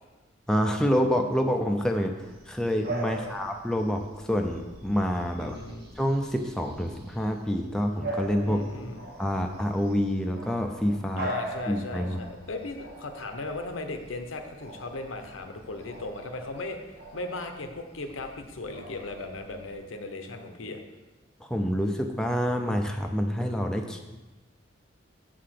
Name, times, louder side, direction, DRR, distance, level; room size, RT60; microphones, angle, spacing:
voice 1, 0.5-5.6 6.0-8.6 9.2-11.3 11.7-12.2 21.4-24.0, equal, 5° left, 3 dB, 0.4 m, -27 dB
Bark / Bird vocalization bird call bird song, 2.2-19.7, right 1 dB, 50° right, 1.2 m, -42 dB
voice 2, 3.1-3.4 5.4-5.9 8.4-9.0 11.2-16.8 17.1-20.8, left 2 dB, 85° left, 6 dB, 0.8 m, -37 dB
6.7 x 4.9 x 5.8 m, 1.2 s
head